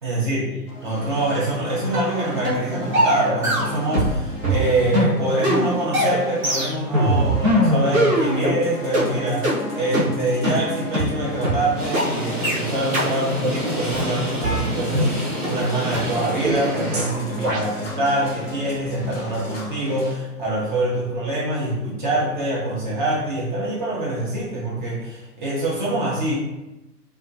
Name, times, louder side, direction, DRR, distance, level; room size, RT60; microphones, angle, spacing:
voice 1, 0.0-26.3, right 1 dB, 30° right, -7 dB, 0.7 m, -25 dB
sound 1, 0.7-20.2, left 1 dB, 40° left, 0.6 m, -36 dB
sound 2, 1.9-2.1 2.4-2.6 2.9-4.2 4.4-8.6 8.9-9.1 9.4-9.6 9.9-10.1 10.4-10.6 10.9-11.1 11.4-11.6 11.9-12.1 12.4-12.6 12.9-13.1 13.4-13.6 13.9-15.1 15.4-15.5 15.9-16.0 16.4-16.6 16.9-17.1 17.4-17.6, right 1 dB, 60° right, 0.9 m, -21 dB
sound 3, 11.8-17.0, equal, 10° right, 1.1 m, -29 dB
2.2 x 2.2 x 2.5 m, 1.0 s
figure-of-eight pair, 120°, 47 cm